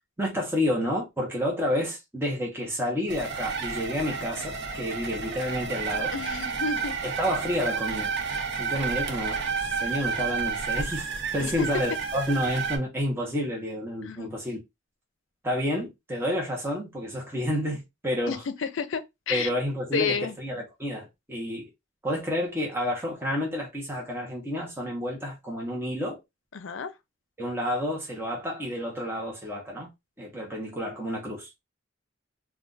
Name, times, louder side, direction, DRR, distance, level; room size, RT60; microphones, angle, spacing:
voice 1, 0.2-6.1 7.0-8.1 8.6-14.6 15.4-18.4 19.3-21.7 22.0-26.2 27.4-29.9 30.2-31.5, equal, 10° right, 0.8 m, -30 dB
sound 1, 3.1-12.8, right 5 dB, 60° right, 0.7 m, -31 dB
voice 2, 6.1-6.9 11.4-11.7 14.0-14.4 18.3-19.5 19.9-20.3 26.5-26.9, left 5 dB, 70° left, 0.5 m, -31 dB
2.4 x 2.3 x 3.8 m
head